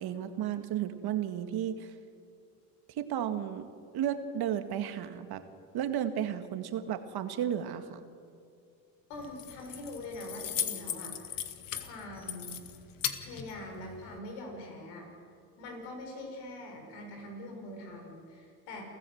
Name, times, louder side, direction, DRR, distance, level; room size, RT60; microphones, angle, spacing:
voice 1, 0.0-1.9 3.0-3.7 3.9-5.4 5.7-8.0, right 10 dB, 60° right, 9 dB, 1.9 m, -33 dB
voice 2, 9.1-11.4 11.7-12.6 13.2-15.1 15.6-18.8, left 1 dB, 75° left, 2 dB, 6.4 m, -43 dB
Keys jangling, 9.1-14.2, left 9 dB, 50° left, 1.9 m, -38 dB
28.5 x 14.5 x 8.0 m, 2.4 s
supercardioid pair, 75°, 42 cm